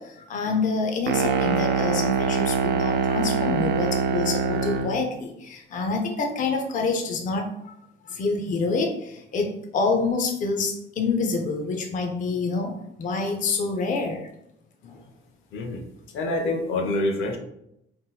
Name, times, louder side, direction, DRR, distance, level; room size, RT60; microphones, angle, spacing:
voice 1, 0.0-7.8 8.0-14.3 14.8-15.0, left 4 dB, 40° left, 3 dB, 0.5 m, -27 dB
sound 1, 1.1-5.0, right 5 dB, 60° right, 0.4 m, -24 dB
voice 2, 15.5-15.8 16.1-17.4, left 2 dB, 80° left, 4 dB, 0.6 m, -26 dB
3.7 x 2.7 x 2.2 m, 0.79 s
cardioid pair, 130°, 21 cm